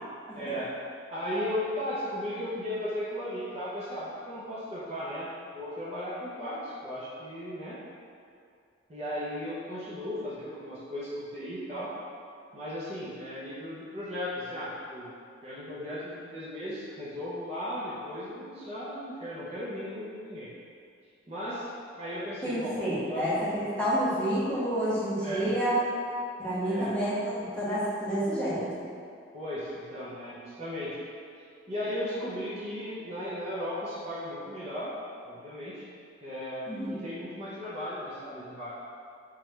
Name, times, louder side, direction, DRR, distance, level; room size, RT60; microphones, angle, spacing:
voice 1, 0.3-0.7 1.1-7.8 8.9-11.9 12.5-15.1 15.4-20.5 21.3-21.7 22.0-22.8 23.1-23.3 25.2-25.5 26.6-26.9 29.3-30.9 31.7-34.9 35.2-35.9 36.2-38.7, left 1 dB, 30° right, -9 dB, 0.6 m, -36 dB
voice 2, 22.4-25.8 26.4-28.8 36.7-37.0, equal, 5° left, -11 dB, 0.9 m, -29 dB
3.6 x 3.2 x 3.2 m, 2.4 s
head